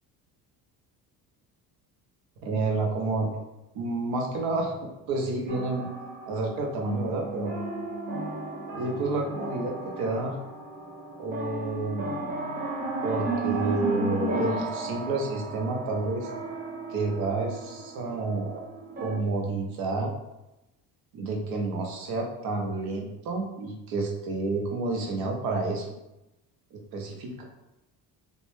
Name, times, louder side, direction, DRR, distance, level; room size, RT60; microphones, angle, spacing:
voice 1, 2.4-3.3 3.7-4.7 5.1-5.9 6.3-7.5 8.7-10.4 11.2-12.0 13.0-16.3 16.9-18.7 19.0-20.1 21.1-25.9 26.7-27.4, right 3 dB, 65° right, 1 dB, 0.6 m, -29 dB
sound 1, 5.5-19.2, right 2 dB, 25° right, 0.4 m, -34 dB
2.1 x 2.0 x 3.0 m, 0.94 s
cardioid pair, 165°, 39 cm